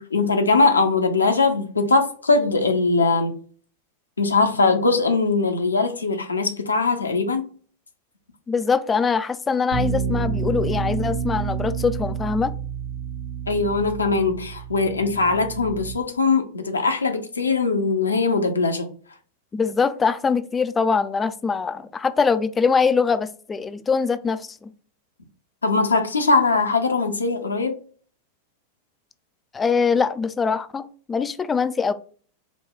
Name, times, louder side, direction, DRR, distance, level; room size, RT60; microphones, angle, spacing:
voice 1, 0.0-3.3 4.2-7.4 13.5-18.9 25.6-27.8, left 3 dB, 75° left, 0.7 m, -21 dB
voice 2, 8.5-12.5 19.5-24.7 29.5-31.9, left 5 dB, 15° left, 0.3 m, -23 dB
Bass guitar, 9.7-16.0, right 6 dB, 60° right, 1.0 m, -29 dB
4.8 x 2.2 x 3.7 m
figure-of-eight pair, 90°, 0 cm